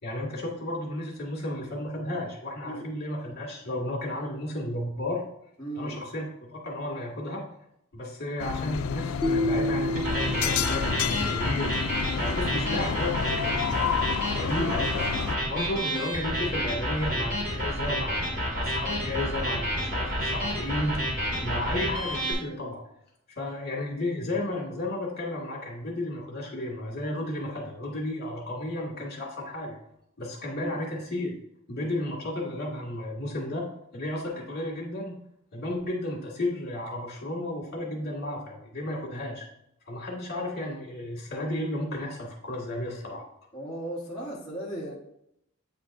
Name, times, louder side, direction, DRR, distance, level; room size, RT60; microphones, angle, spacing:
voice 1, 0.0-5.2 5.8-7.4 7.9-14.1 14.3-15.1 15.5-22.8 23.4-29.8 30.2-31.3 31.7-33.7 33.9-35.2 35.5-39.5 39.9-43.2, left 1 dB, 50° left, -3 dB, 1.9 m, -33 dB
voice 2, 5.6-6.0 14.5-14.8 30.5-30.8 43.5-44.9, equal, 20° left, -7 dB, 1.2 m, -36 dB
sound 1, 8.4-15.4, left 8 dB, 85° left, 0.3 m, -30 dB
sound 2, 9.2-11.4, left 1 dB, 5° left, 0.4 m, -29 dB
sound 3, 9.9-22.3, equal, 45° right, 2.4 m, -30 dB
8.7 x 4.4 x 2.6 m, 0.76 s
head